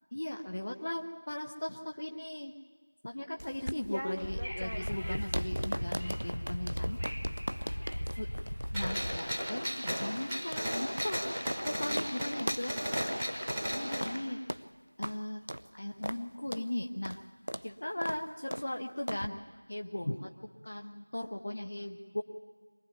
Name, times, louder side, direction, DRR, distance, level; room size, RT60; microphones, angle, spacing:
voice 1, 0.1-2.5 3.0-7.0 8.2-8.3 8.7-11.3 11.6-12.8 13.7-14.4 15.0-15.4 15.7-17.2 17.6-19.4 19.7-20.3 20.6-22.2, left 1 dB, 25° left, 3 dB, 0.8 m, -38 dB
sound 1, 3.4-11.7 12.0-12.1 12.4-12.7 12.9-13.1 13.5-13.6 14.0-14.2 14.5-14.7 15.0-15.2 15.5-15.7 16.0-16.2 16.5-16.7 17.1-17.2 17.5-17.7 18.0-18.2 18.5-18.7 19.1-19.3, equal, 60° right, 0.7 m, -39 dB
Wind / Subway metro underground, 4.2-9.2, equal, 65° left, 0.7 m, -37 dB
Gunshot gunfire, 8.7-14.2, equal, ahead, 1.2 m, -35 dB
23.5 x 17.5 x 9.3 m, 1.4 s
figure-of-eight pair, 175°, 0 cm